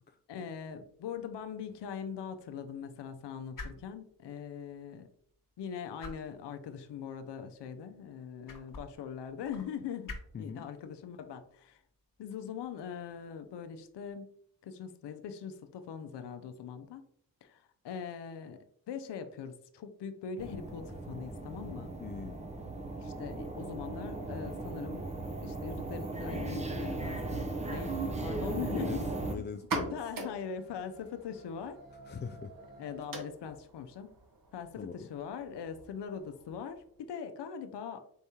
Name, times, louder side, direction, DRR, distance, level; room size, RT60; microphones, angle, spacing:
voice 1, 0.3-5.1 5.6-10.1 10.4-11.8 12.2-14.3 14.6-17.0 17.4-18.6 18.9-21.9 23.0-25.1 25.4-29.1 29.3-29.4 29.9-31.8 32.8-34.1 34.5-38.0, left 7 dB, 70° left, 8 dB, 0.6 m, -41 dB
sound 1, 0.8-14.1, left 3 dB, 50° left, 1.1 m, -53 dB
voice 2, 10.3-10.7 22.0-22.4 28.8-30.0 32.1-32.5 34.8-35.1, left 6 dB, 25° left, 6 dB, 0.3 m, -41 dB
sound 2, 20.4-29.3, right 2 dB, 15° right, 0.6 m, -37 dB
sound 3, 29.5-37.0, right 2 dB, 50° right, 1.2 m, -43 dB
4.6 x 3.4 x 2.8 m, 0.65 s
cardioid pair, 50°, 43 cm